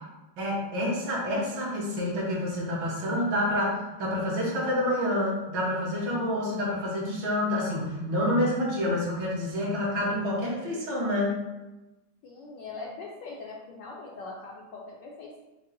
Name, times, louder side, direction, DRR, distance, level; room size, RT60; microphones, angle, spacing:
voice 1, 0.4-11.3, left 1 dB, 60° right, -4 dB, 1.5 m, -28 dB
voice 2, 12.2-15.4, left 3 dB, 75° left, -3 dB, 1.0 m, -41 dB
5.4 x 2.1 x 3.8 m, 1.0 s
omnidirectional pair, 2.3 m